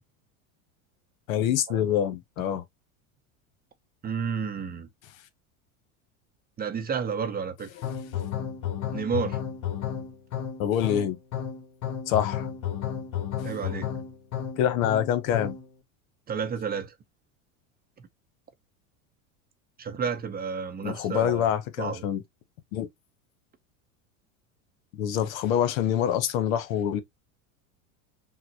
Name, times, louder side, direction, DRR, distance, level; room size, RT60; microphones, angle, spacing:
voice 1, 1.3-2.6 7.8-7.9 10.6-11.2 12.1-12.5 13.4-13.5 14.6-15.6 20.8-22.2 22.7-22.9 24.9-27.0, left 10 dB, 75° left, 0.9 m, -26 dB
voice 2, 4.0-4.9 6.6-7.7 8.9-9.4 13.4-13.9 16.3-16.9 19.8-21.5 21.8-22.0, right 6 dB, 20° right, 0.6 m, -31 dB
sound 1, 7.8-15.7, left 9 dB, 45° left, 1.2 m, -32 dB
5.8 x 2.1 x 2.8 m
supercardioid pair, 105°, 41 cm